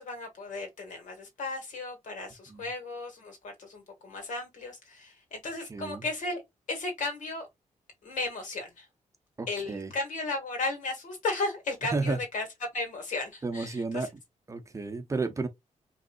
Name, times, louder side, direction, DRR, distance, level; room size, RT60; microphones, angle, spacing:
voice 1, 0.0-6.4 6.7-7.5 8.0-8.9 9.5-12.4 12.7-14.1, left 3 dB, 75° left, 2.7 m, -35 dB
voice 2, 5.7-6.1 9.4-9.9 11.9-12.2 13.4-14.1 14.5-15.5, right 3 dB, 25° right, 0.7 m, -32 dB
5.2 x 3.2 x 2.6 m
wide cardioid pair, 160°, 13 cm